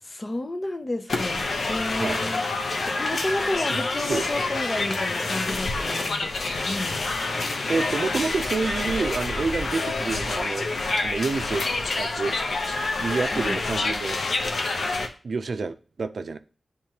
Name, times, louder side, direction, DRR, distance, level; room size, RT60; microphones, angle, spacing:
voice 1, 0.0-2.4 2.8-7.1 13.3-13.6, left 1 dB, 35° left, 0.7 m, -32 dB
sound 1, 1.1-15.1, left 3 dB, 75° left, 0.8 m, -27 dB
voice 2, 7.7-10.7 11.0-11.6 11.9-12.4 13.0-14.2 15.2-16.4, right 4 dB, 70° right, 0.4 m, -28 dB
10.0 x 3.6 x 2.9 m
wide cardioid pair, 70°, 0 cm